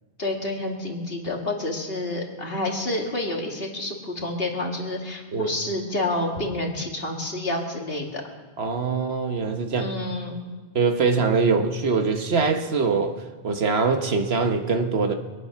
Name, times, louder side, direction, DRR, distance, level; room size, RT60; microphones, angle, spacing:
voice 1, 0.2-8.2 9.8-10.4, left 2 dB, 60° left, 0 dB, 2.4 m, -29 dB
voice 2, 8.6-10.0 10.7-15.1, right 4 dB, 70° right, 5 dB, 1.5 m, -23 dB
25.0 x 9.1 x 5.9 m, 1.3 s
omnidirectional pair, 1.1 m